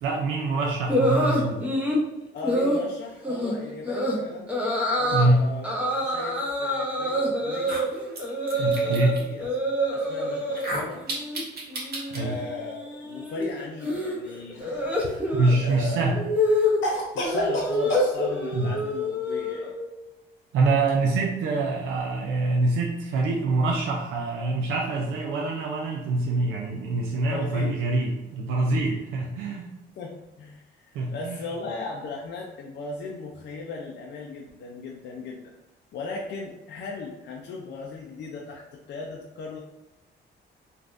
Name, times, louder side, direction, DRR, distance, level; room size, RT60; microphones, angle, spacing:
voice 1, 0.0-1.7 5.1-5.5 8.6-9.2 12.1-12.4 15.3-16.2 18.5-18.7 20.5-29.7 30.9-31.4, right 2 dB, 90° right, 0 dB, 0.4 m, -25 dB
sound 1, 0.9-2.0 2.4-2.8 3.2-3.5 3.9-4.2 4.5-5.3 5.6-9.1 9.4-10.7 11.0-11.4 11.7-19.9, left 1 dB, 5° right, 0.8 m, -26 dB
voice 2, 2.3-4.5 4.9-5.7 6.0-7.7 8.5-9.5 9.9-11.0 12.1-14.7 15.0-15.1 15.6-16.2 17.1-19.7 27.1-27.8 29.9-35.5 35.9-39.6, left 3 dB, 60° left, -1 dB, 0.5 m, -37 dB
sound 2, 6.9-7.0 7.5-9.2 10.5-12.2, right 1 dB, 50° right, 1.1 m, -34 dB
Cough, 14.5-15.3 16.8-18.1, equal, 75° left, 0.9 m, -29 dB
3.3 x 2.4 x 2.5 m, 1.0 s
cardioid pair, 90°, 20 cm